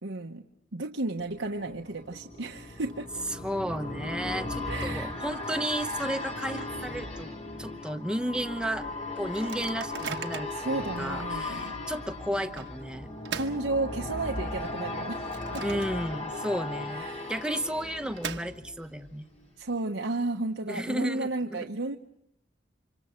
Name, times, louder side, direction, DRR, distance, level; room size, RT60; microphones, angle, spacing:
voice 1, 0.0-0.4 0.7-3.2 4.6-5.2 10.5-11.8 13.3-15.3 15.5-15.6 16.9-17.3 19.6-22.0, right 2 dB, 85° right, 2 dB, 1.1 m, -33 dB
sound 1, 1.3-19.1 19.4-19.5, left 2 dB, 35° left, 2.6 m, -37 dB
Microwave oven, 2.4-2.9 3.2-3.3 3.6-6.7 7.1-7.2 7.5-7.8 8.3-8.4 9.2-10.7 11.3-11.4 12.6-14.4 14.8-16.3 16.6-16.7 17.6-19.0, right 6 dB, 70° right, 1.1 m, -42 dB
voice 2, 3.3-7.3 7.6-8.9 9.2-13.1 15.6-19.3 20.7-21.7, right 1 dB, 5° right, 8 dB, 0.8 m, -33 dB
29.5 x 26.0 x 4.5 m, 0.76 s
head